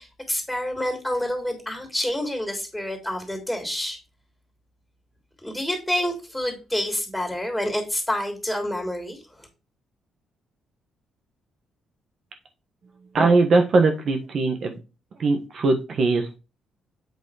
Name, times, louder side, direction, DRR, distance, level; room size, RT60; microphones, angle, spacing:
voice 1, 0.0-4.0 5.4-9.5, left 1 dB, 5° left, 3 dB, 3.2 m, -28 dB
voice 2, 13.1-14.8 15.2-16.4, right 3 dB, 55° right, 4 dB, 1.4 m, -20 dB
8.1 x 4.2 x 4.9 m, 0.29 s
cardioid pair, 90°, 0 cm